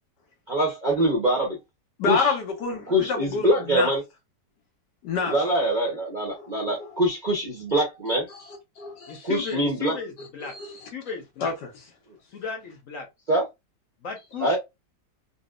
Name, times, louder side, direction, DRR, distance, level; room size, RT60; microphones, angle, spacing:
voice 1, 0.5-1.6 2.1-2.3 2.9-4.0 5.3-8.3 9.2-10.0 13.3-13.4 14.4-14.6, right 1 dB, 45° right, 0.6 m, -24 dB
voice 2, 2.0-3.9 5.0-5.3 6.3-7.0 8.3-9.3 10.4-10.9 11.4-11.7, left 4 dB, 75° left, 1.6 m, -29 dB
voice 3, 9.1-10.5 10.9-11.5 12.3-13.1 14.0-14.6, left 5 dB, 60° left, 1.0 m, -35 dB
4.1 x 2.1 x 2.4 m
omnidirectional pair, 1.9 m